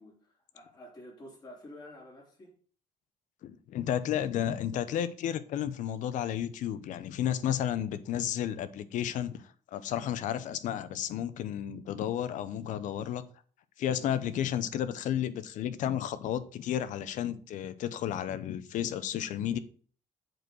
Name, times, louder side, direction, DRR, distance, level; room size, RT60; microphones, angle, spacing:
voice 1, 0.0-2.6, left 1 dB, 30° left, 3.5 m, -50 dB
voice 2, 3.4-9.4 9.7-13.2 13.8-19.6, left 10 dB, 80° left, 0.8 m, -32 dB
7.8 x 4.7 x 6.3 m
cardioid pair, 120°, 13 cm